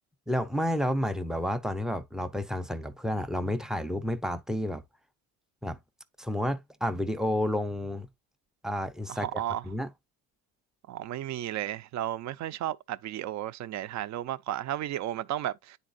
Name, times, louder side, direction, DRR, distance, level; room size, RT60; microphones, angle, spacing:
voice 1, 0.3-4.8 5.6-5.8 6.2-8.1 8.6-9.9, equal, ahead, 0.4 m, -30 dB
voice 2, 9.1-9.6 10.9-15.8, right 12 dB, 55° right, 0.5 m, -33 dB
9.7 x 4.1 x 2.5 m
cardioid pair, 115°, 34 cm